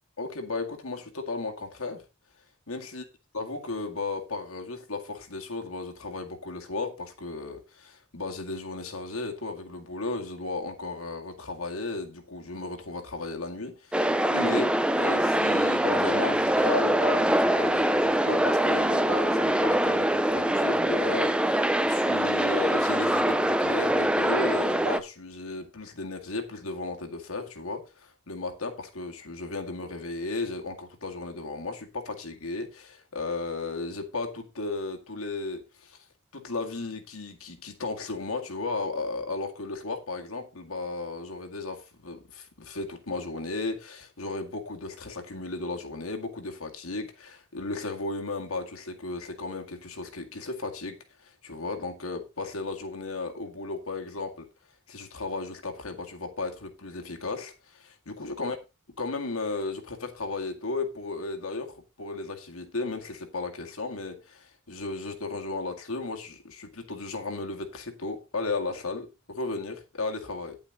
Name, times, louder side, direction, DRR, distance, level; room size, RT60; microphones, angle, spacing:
voice 1, 0.2-2.0 2.7-3.0 3.3-36.0 36.3-51.0 51.2-54.5 54.9-58.6 59.0-70.6, left 3 dB, 85° left, 2.0 m, -35 dB
sound 1, 13.9-25.0, right 1 dB, 5° right, 0.5 m, -24 dB
9.5 x 8.6 x 3.9 m
head